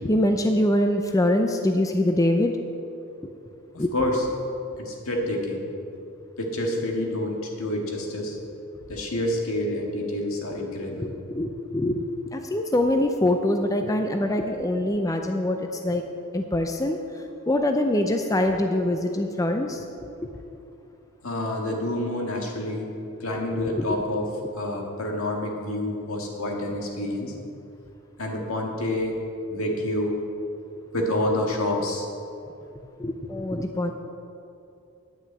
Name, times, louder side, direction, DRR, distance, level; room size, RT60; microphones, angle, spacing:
voice 1, 0.0-2.5 3.8-3.9 10.8-12.0 12.3-16.0 16.3-19.8 20.2-20.3 23.7-23.8 33.0-33.9, left 1 dB, 15° left, 5 dB, 0.5 m, -24 dB
voice 2, 3.7-4.3 4.8-5.7 6.4-8.4 8.9-11.1 21.2-22.9 23.2-24.3 24.6-27.3 28.2-29.2 29.5-30.2 30.9-32.1, left 1 dB, 75° left, 0 dB, 1.9 m, -28 dB
9.6 x 6.2 x 8.7 m, 2.7 s
head